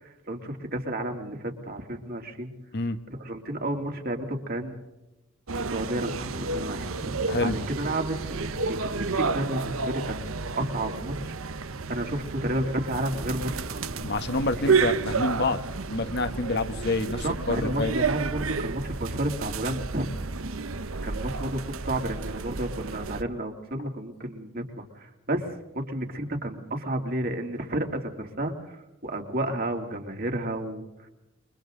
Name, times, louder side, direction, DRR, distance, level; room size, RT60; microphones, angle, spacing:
voice 1, 0.0-2.5 3.1-4.7 5.5-10.3 10.6-11.6 11.9-14.0 14.6-14.7 17.2-20.1 21.0-30.9, right 1 dB, 50° right, 3 dB, 3.0 m, -32 dB
sound 1, 5.5-23.2, right 4 dB, 85° right, 1.0 m, -31 dB
voice 2, 14.0-15.6 15.9-18.0, left 2 dB, 55° left, 9 dB, 1.4 m, -27 dB
28.5 x 24.0 x 3.9 m, 0.95 s
head